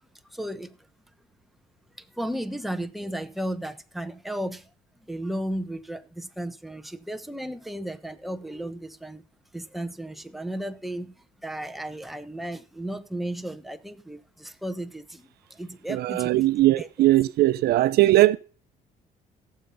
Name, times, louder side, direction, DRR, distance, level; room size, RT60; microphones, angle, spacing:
voice 1, 0.3-0.8 2.0-4.7 5.0-9.2 9.5-11.1 11.4-16.5 16.8-16.9, right 1 dB, ahead, 1.2 m, -34 dB
voice 2, 15.9-18.4, right 16 dB, 70° right, 0.7 m, -20 dB
16.5 x 7.4 x 5.5 m
cardioid pair, 110°, 17 cm